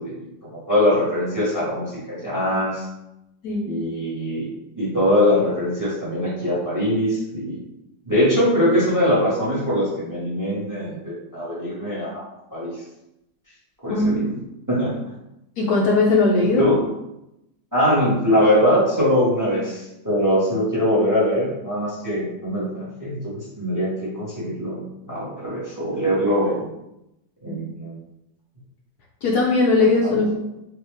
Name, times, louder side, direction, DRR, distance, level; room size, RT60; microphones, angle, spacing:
voice 1, 0.0-2.8 3.6-4.5 4.8-7.6 8.0-12.2 12.5-12.7 13.8-14.3 14.7-15.0 16.4-16.8 17.7-26.7 27.4-28.0 30.0-30.4, equal, 10° right, -7 dB, 1.5 m, -22 dB
voice 2, 13.9-14.4 15.6-16.6 27.5-27.6 29.2-30.4, left 3 dB, 70° left, -2 dB, 1.1 m, -19 dB
4.7 x 2.9 x 3.4 m, 0.88 s
omnidirectional pair, 1.9 m